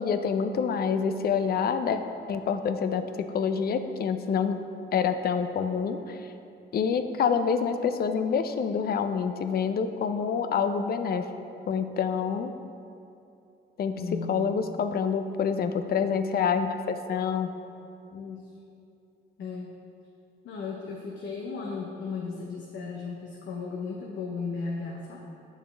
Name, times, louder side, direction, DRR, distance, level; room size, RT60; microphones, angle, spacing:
voice 1, 0.0-2.0 2.3-4.6 4.9-6.3 6.7-11.3 11.7-12.5 13.8-14.0 14.3-17.5, left 6 dB, 50° left, 8 dB, 0.5 m, -27 dB
voice 2, 14.0-14.4 18.1-18.4 19.4-19.7 20.4-25.3, left 4 dB, 70° left, -2 dB, 0.8 m, -35 dB
8.6 x 6.4 x 3.4 m, 2.7 s
cardioid pair, 90°, 20 cm